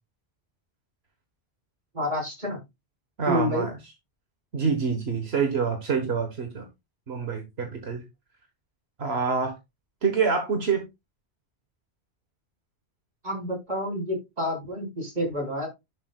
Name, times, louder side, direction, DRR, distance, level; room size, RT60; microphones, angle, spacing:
voice 1, 1.9-2.6 3.3-3.7 13.2-15.7, equal, 45° right, 5.3 m, -29 dB
voice 2, 3.2-3.7 4.5-6.6 7.1-8.0 9.0-9.5 10.0-10.9, right 5 dB, 75° right, 1.7 m, -26 dB
11.0 x 7.2 x 2.4 m
omnidirectional pair, 1.1 m